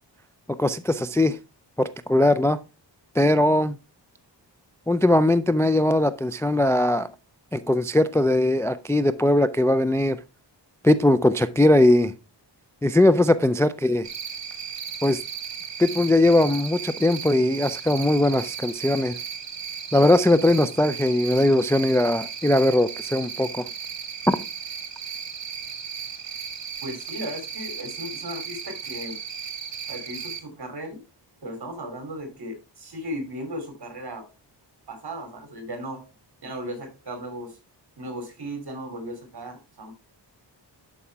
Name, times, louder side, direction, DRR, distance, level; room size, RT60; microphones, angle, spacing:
voice 1, 0.6-1.4 1.8-2.6 3.2-3.8 4.9-7.1 7.5-10.2 10.8-12.1 12.8-14.1 15.0-15.2 15.8-19.2 19.9-23.7 24.3-24.4, left 1 dB, 5° left, 0.3 m, -20 dB
Cricket, 14.0-30.4, right 7 dB, 80° right, 1.4 m, -36 dB
voice 2, 26.8-29.2 29.9-31.0 31.4-34.3 34.9-36.0 36.4-37.6 38.0-39.9, equal, 60° right, 3.0 m, -36 dB
11.5 x 4.9 x 3.4 m
wide cardioid pair, 110°, 43 cm